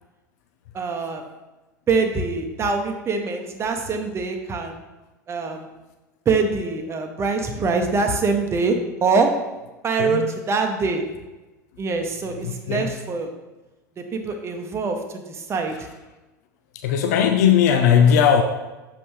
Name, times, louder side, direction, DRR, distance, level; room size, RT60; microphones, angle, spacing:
voice 1, 0.7-1.2 1.9-4.8 5.3-5.7 6.2-9.3 9.8-11.0 11.8-13.3 14.0-15.9, right 4 dB, 30° right, 4 dB, 0.9 m, -24 dB
voice 2, 10.0-10.3 12.4-12.9 16.8-18.4, left 8 dB, 65° left, 5 dB, 0.5 m, -18 dB
6.9 x 5.3 x 3.2 m, 1.1 s
hypercardioid pair, 80°, 10 cm